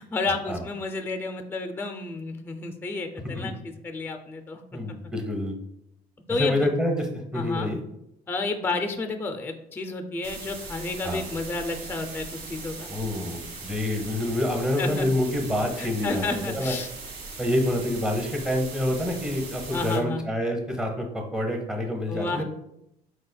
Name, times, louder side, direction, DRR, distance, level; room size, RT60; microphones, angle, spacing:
voice 1, 0.0-4.6 6.3-6.7 7.3-7.7 8.3-12.9 14.8-15.1 15.8-16.9 19.7-20.2 22.1-22.4, left 3 dB, 15° left, 6 dB, 0.4 m, -31 dB
voice 2, 4.7-5.5 6.4-7.8 11.0-11.2 12.9-16.2 16.5-16.8 17.4-22.4, left 1 dB, 5° right, 2 dB, 0.8 m, -27 dB
sound 1, 10.2-20.0, right 3 dB, 65° right, 1.2 m, -40 dB
4.8 x 4.0 x 2.2 m, 0.80 s
cardioid pair, 110°, 17 cm